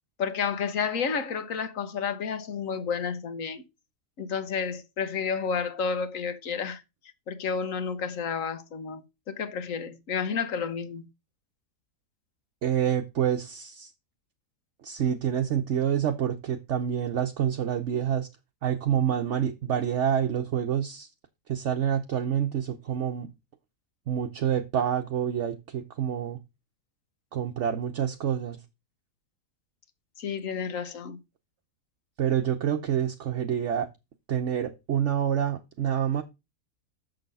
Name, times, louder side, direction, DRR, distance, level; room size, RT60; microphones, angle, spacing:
voice 1, 0.2-3.6 4.2-6.8 7.3-11.1 30.2-31.2, left 6 dB, 60° left, 1.4 m, -31 dB
voice 2, 12.6-13.9 14.8-18.3 18.6-21.1 21.5-23.3 24.1-26.4 27.3-28.6 32.2-33.9 34.3-36.2, right 9 dB, 55° right, 1.0 m, -27 dB
6.9 x 6.5 x 5.3 m
omnidirectional pair, 1.6 m